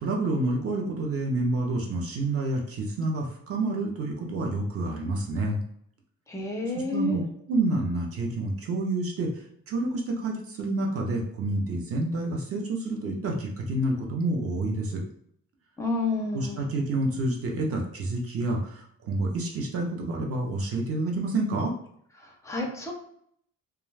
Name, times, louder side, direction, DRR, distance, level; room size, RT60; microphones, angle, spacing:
voice 1, 0.0-5.6 6.9-9.3 9.7-15.0 16.3-21.7, right 2 dB, 45° right, 0 dB, 0.5 m, -28 dB
voice 2, 6.3-7.2 15.8-16.6 22.2-22.9, left 2 dB, 10° left, 0 dB, 0.4 m, -30 dB
2.3 x 2.2 x 3.1 m, 0.66 s
cardioid pair, 165°, 34 cm